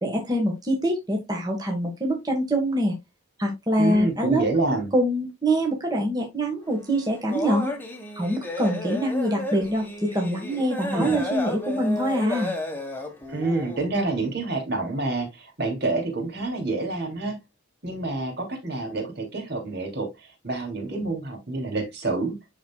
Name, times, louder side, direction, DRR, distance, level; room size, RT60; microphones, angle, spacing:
voice 1, 0.0-2.9 3.4-4.4 4.9-7.7 8.1-12.5, right 1 dB, 20° right, 1.4 m, -24 dB
voice 2, 3.8-4.9 10.9-11.2 13.3-17.4 17.8-22.4, right 3 dB, 55° right, 2.8 m, -28 dB
sound 1, 6.7-13.8, left 1 dB, 10° left, 1.2 m, -33 dB
11.5 x 4.3 x 2.3 m
head